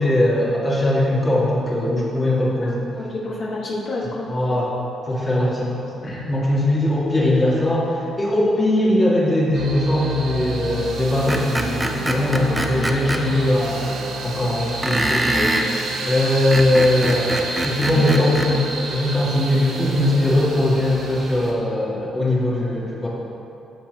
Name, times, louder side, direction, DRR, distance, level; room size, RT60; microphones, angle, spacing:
voice 1, 0.0-2.9 4.3-4.7 5.1-13.8 14.2-15.3 16.1-17.3 17.6-18.6 18.9-23.1, left 1 dB, 25° left, -6 dB, 2.3 m, -20 dB
voice 2, 2.6-4.3 12.4-12.9 14.6-14.7 15.3-15.6 17.8-18.2 18.6-18.9, left 2 dB, 65° left, -6 dB, 1.7 m, -29 dB
sound 1, 9.5-21.5, right 3 dB, 80° right, 1.4 m, -29 dB
Screech, 11.3-13.2 14.8-15.7 16.3-18.5, right 1 dB, 10° right, 0.7 m, -24 dB
12.5 x 7.4 x 3.0 m, 2.7 s
cardioid pair, 90°, 0 cm